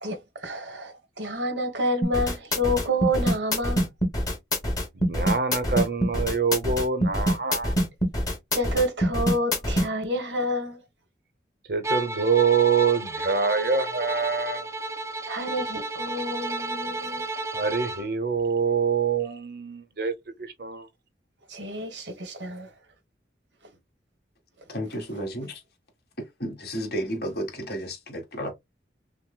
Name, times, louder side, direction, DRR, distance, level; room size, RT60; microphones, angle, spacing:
voice 1, 0.0-3.9 8.5-10.8 15.3-17.2 21.5-22.7, equal, 90° right, 1.3 m, -29 dB
sound 1, 2.0-9.9, equal, 20° left, 1.2 m, -24 dB
voice 2, 4.9-7.7 11.7-14.7 17.5-20.1 20.4-20.9, right 5 dB, 55° right, 0.8 m, -25 dB
Bowed string instrument, 11.8-18.1, right 2 dB, 15° right, 0.4 m, -32 dB
voice 3, 24.7-25.6 26.4-28.5, equal, 55° left, 1.7 m, -32 dB
5.9 x 2.1 x 2.2 m
head